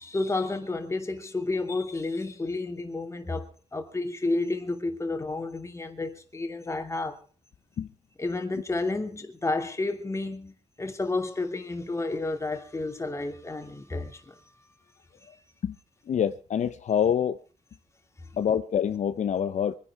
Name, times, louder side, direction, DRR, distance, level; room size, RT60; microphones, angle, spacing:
voice 1, 0.0-7.2 8.2-14.4 15.2-15.3, left 2 dB, 20° left, 2.7 m, -31 dB
voice 2, 16.1-17.4 18.4-19.7, left 8 dB, 70° left, 0.8 m, -26 dB
24.5 x 10.5 x 4.8 m
cardioid pair, 110°, 13 cm